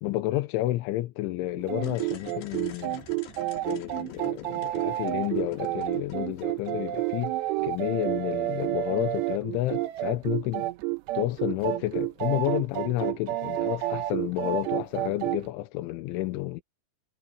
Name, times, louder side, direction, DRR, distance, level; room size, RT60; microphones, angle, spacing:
voice 1, 0.0-3.0 3.7-7.4 7.6-10.7 11.1-16.6, left 16 dB, 85° left, 3.4 m, -30 dB
sound 1, 1.6-15.5, right 16 dB, 80° right, 2.9 m, -30 dB
sound 2, 1.8-7.6, left 8 dB, 70° left, 4.0 m, -47 dB
omnidirectional pair, 5.3 m